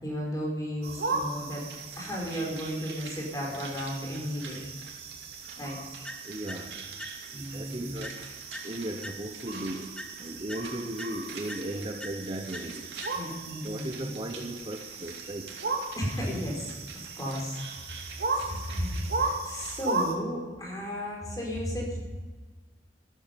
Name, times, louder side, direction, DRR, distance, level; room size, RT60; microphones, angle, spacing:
voice 1, 0.0-1.6 2.0-4.6 5.6-5.8 7.3-7.9 13.1-14.1 16.0-16.7 17.1-17.6 18.0-22.0, equal, 20° left, -2 dB, 4.7 m, -34 dB
sound 1, 0.8-20.1, right 3 dB, 65° right, 2.2 m, -37 dB
sound 2, 1.5-19.9 20.2-20.3, right 4 dB, 90° right, 2.8 m, -49 dB
sound 3, 6.0-7.5 8.0-9.6 10.0-13.6, equal, 5° left, 0.9 m, -45 dB
voice 2, 6.2-6.7 7.3-8.1 8.6-12.9 13.2-13.3 13.6-15.5, right 1 dB, 30° right, 4 dB, 1.0 m, -36 dB
14.0 x 13.5 x 5.3 m, 1.3 s
head